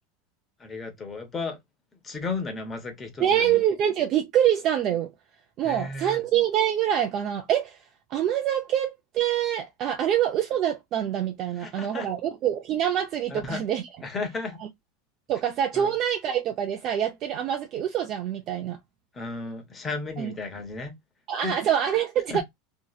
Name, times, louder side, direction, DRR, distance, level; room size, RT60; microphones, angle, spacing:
voice 1, 0.6-1.6 2.0-3.6 5.6-6.2 11.6-12.1 13.3-13.6 14.0-14.6 15.7-15.9 19.1-20.9 21.4-21.5, left 3 dB, 20° left, 0.9 m, -34 dB
voice 2, 3.2-5.1 5.6-7.8 8.1-13.8 15.3-18.8 20.2-20.3 21.3-22.4, right 10 dB, 40° right, 0.5 m, -25 dB
2.9 x 2.8 x 2.3 m
supercardioid pair, 140°, 0 cm